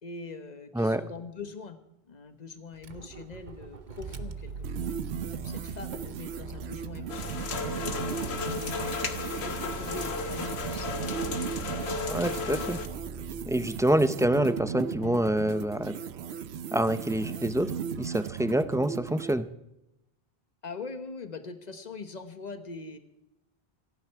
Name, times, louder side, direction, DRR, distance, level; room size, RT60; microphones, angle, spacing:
voice 1, 0.0-1.8 2.1-4.9 5.3-9.0 9.4-11.0 20.6-23.0, left 4 dB, 45° left, 9 dB, 1.3 m, -42 dB
Motor vehicle (road), 2.7-13.9, right 5 dB, 50° right, 1.0 m, -42 dB
sound 1, 4.6-19.4, right 7 dB, 85° right, 1.0 m, -37 dB
sound 2, 7.1-12.9, left 4 dB, 85° left, 1.5 m, -34 dB
voice 2, 12.1-12.8 13.5-15.9 16.7-17.7 18.0-19.5, right 1 dB, 5° right, 12 dB, 0.3 m, -26 dB
27.5 x 9.4 x 4.7 m, 0.87 s
omnidirectional pair, 1.0 m